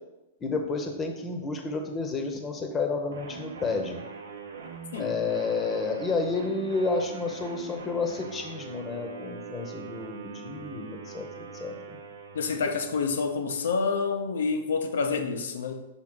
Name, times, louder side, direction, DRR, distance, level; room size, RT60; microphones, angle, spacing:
voice 1, 0.4-4.0 4.9-12.0, left 4 dB, 20° left, 0.9 m, -31 dB
sound 1, 3.1-13.4, right 5 dB, 70° right, 0.7 m, -42 dB
voice 2, 12.3-15.8, left 4 dB, 65° left, 0.6 m, -28 dB
6.1 x 4.1 x 3.8 m
figure-of-eight pair, 105°, 0 cm